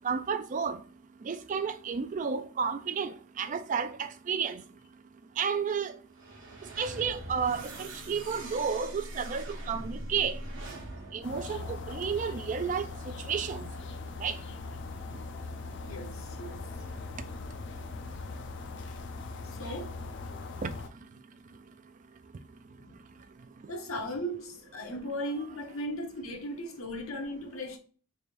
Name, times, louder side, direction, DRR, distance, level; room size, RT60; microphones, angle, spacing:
voice 1, 0.0-0.8 1.3-4.6 5.4-5.9 6.8-10.4 11.1-12.9 13.3-13.7 14.2-14.4 20.6-20.7, right 6 dB, 35° right, 0.3 m, -31 dB
sound 1, 6.1-12.4, right 1 dB, 60° right, 1.0 m, -42 dB
sound 2, 11.2-20.9, left 3 dB, 55° left, 0.5 m, -40 dB
voice 2, 15.8-16.7 19.4-20.0 22.8-23.0 23.7-27.8, equal, 75° left, 0.9 m, -37 dB
3.4 x 2.6 x 4.3 m
head